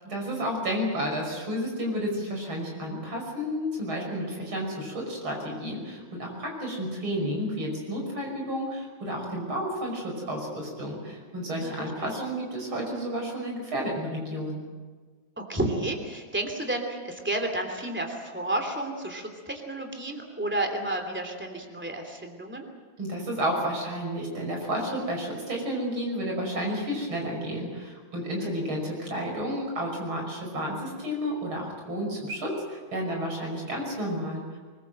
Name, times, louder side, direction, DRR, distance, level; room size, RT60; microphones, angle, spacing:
voice 1, 0.0-14.6 23.0-34.6, equal, 85° right, 0 dB, 6.5 m, -31 dB
voice 2, 11.5-12.1 15.4-22.7 28.4-28.5, right 1 dB, 5° right, 3 dB, 2.9 m, -31 dB
24.0 x 21.0 x 7.7 m, 1.4 s
omnidirectional pair, 2.2 m